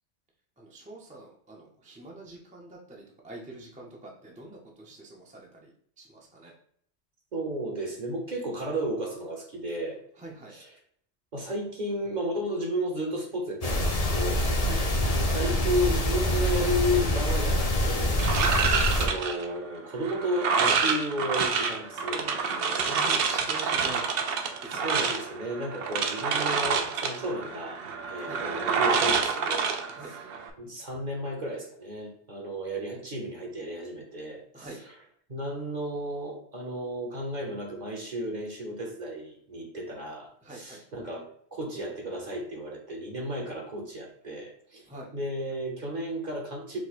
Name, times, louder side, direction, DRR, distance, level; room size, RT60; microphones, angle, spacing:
voice 1, 0.6-5.7 6.0-6.1 6.3-6.5 10.2-10.5 14.6-14.8 22.9-24.1 24.6-24.8 28.2-28.4 29.9-30.1 34.5-34.8 40.5-40.8 44.9-45.1, right 2 dB, 10° right, -1 dB, 0.6 m, -44 dB
voice 2, 7.3-10.0 10.5-10.8 11.3-14.5 15.3-22.9 24.7-27.8 28.1-29.7 30.0-41.2 41.5-46.8, equal, 40° right, -1 dB, 1.0 m, -33 dB
sound 1, 13.6-19.1, left 1 dB, 40° left, 0.7 m, -25 dB
sound 2, 18.2-30.5, right 5 dB, 60° right, 0.7 m, -28 dB
4.7 x 2.2 x 4.1 m, 0.63 s
omnidirectional pair, 1.2 m